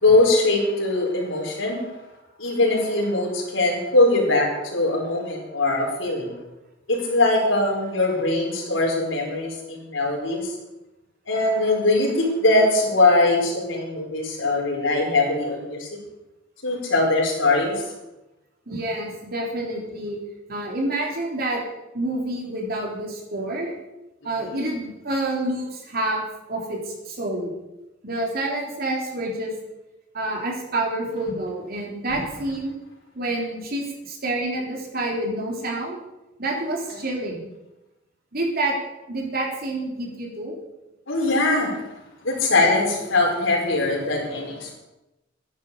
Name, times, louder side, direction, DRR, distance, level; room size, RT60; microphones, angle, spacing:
voice 1, 0.0-1.9 2.4-6.4 6.9-10.5 11.3-15.9 16.6-17.9 24.5-24.6 32.1-32.2 41.1-41.8 42.2-44.8, left 2 dB, 75° left, -1 dB, 4.6 m, -21 dB
voice 2, 18.7-20.2 20.5-21.6 21.9-23.7 24.2-27.5 28.0-29.5 30.1-32.7 33.2-36.0 36.4-37.5 38.3-38.7 39.1-40.5, right 1 dB, 50° right, -1 dB, 3.7 m, -28 dB
13.0 x 10.5 x 6.8 m, 0.98 s
head